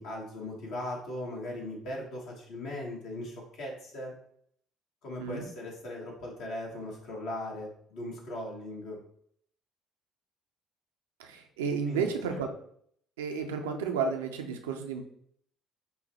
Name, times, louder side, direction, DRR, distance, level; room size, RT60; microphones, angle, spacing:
voice 1, 0.0-4.1 5.0-9.0 11.9-12.4, left 1 dB, 60° left, -1 dB, 1.3 m, -39 dB
voice 2, 11.2-12.5 13.2-15.0, right 5 dB, 75° right, 4 dB, 0.5 m, -32 dB
5.5 x 2.1 x 4.0 m, 0.65 s
figure-of-eight pair, 50°, 0 cm